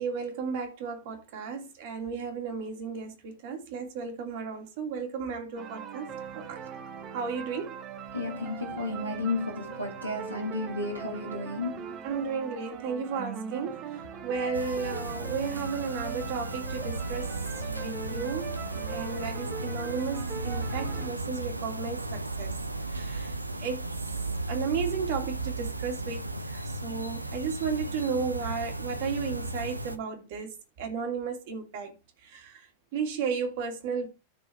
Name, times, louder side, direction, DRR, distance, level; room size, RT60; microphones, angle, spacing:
voice 1, 0.0-6.1 6.3-6.6 7.1-7.8 12.0-13.8 14.2-17.3 17.8-18.5 18.9-22.5 22.9-23.8 24.5-30.5 30.8-31.9 32.2-32.7 32.9-34.1, right 5 dB, 50° right, 3.0 m, -34 dB
sound 1, 5.6-21.1, right 7 dB, 35° right, 1.4 m, -41 dB
voice 2, 8.1-12.0, left 2 dB, 85° left, 2.1 m, -33 dB
sound 2, 14.5-30.0, right 2 dB, 85° right, 0.8 m, -35 dB
13.5 x 4.7 x 3.6 m
figure-of-eight pair, 90°, 0 cm